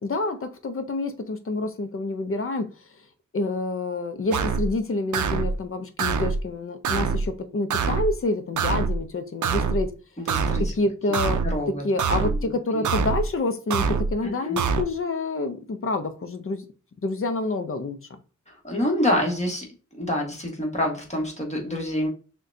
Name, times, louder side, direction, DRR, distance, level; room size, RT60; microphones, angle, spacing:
voice 1, 0.0-2.7 3.3-9.9 10.6-11.4 11.8-16.6 17.0-18.0, left 2 dB, 45° left, 0.6 m, -28 dB
sound 1, 4.3-4.7 5.1-5.5 6.0-6.4 6.8-7.3 7.7-8.1 8.6-9.0 9.4-9.8 10.3-10.7 11.1-11.5 12.0-12.4 12.8-13.3 13.7-14.1 14.6-14.8, right 5 dB, 70° right, 0.5 m, -24 dB
voice 2, 10.2-10.6 11.4-11.8 12.2-12.5 14.2-14.6 18.5-19.6 20.0-22.1, left 1 dB, 20° left, 1.3 m, -27 dB
6.3 x 2.2 x 2.6 m
wide cardioid pair, 105°, 31 cm